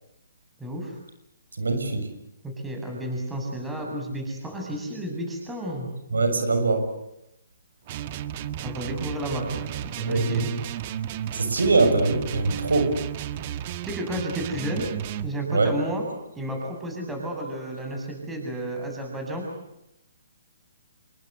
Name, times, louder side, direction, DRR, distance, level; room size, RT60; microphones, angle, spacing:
voice 1, 0.6-1.0 2.4-5.9 8.6-10.5 13.9-14.8 15.2-16.0 16.3-19.4, right 1 dB, 10° right, 1 dB, 7.9 m, -32 dB
voice 2, 1.6-2.0 6.1-6.9 10.0-10.5 11.3-12.9 15.5-15.7, right 3 dB, 90° right, 7 dB, 6.7 m, -22 dB
sound 1, 7.9-15.3, right 11 dB, 35° right, 1.5 m, -33 dB
28.0 x 23.0 x 8.3 m, 0.85 s
hypercardioid pair, 150°, 0 cm